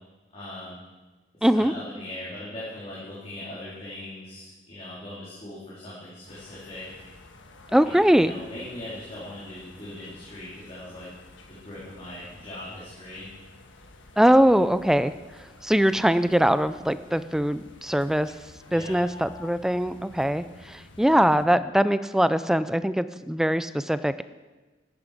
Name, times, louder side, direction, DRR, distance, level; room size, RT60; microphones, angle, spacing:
voice 1, 0.3-0.8 1.5-7.0 7.8-11.1 11.5-13.3 18.7-19.0, left 1 dB, 30° left, -9 dB, 3.9 m, -40 dB
voice 2, 1.4-1.7 7.7-8.3 14.2-15.1 15.6-18.3 18.7-24.2, equal, 5° right, 13 dB, 0.3 m, -22 dB
sound 1, 6.3-21.4, left 2 dB, 75° left, 1.4 m, -51 dB
14.5 x 10.5 x 5.1 m, 1.2 s
head